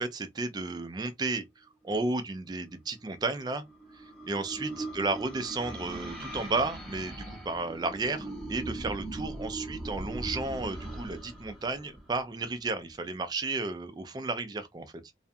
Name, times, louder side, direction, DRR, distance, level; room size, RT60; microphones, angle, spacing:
voice 1, 0.0-1.5 1.8-3.6 4.3-14.9, right 3 dB, 20° right, 0.3 m, -33 dB
sound 1, 3.2-12.7, right 2 dB, 5° left, 0.7 m, -40 dB
2.4 x 2.2 x 2.5 m
head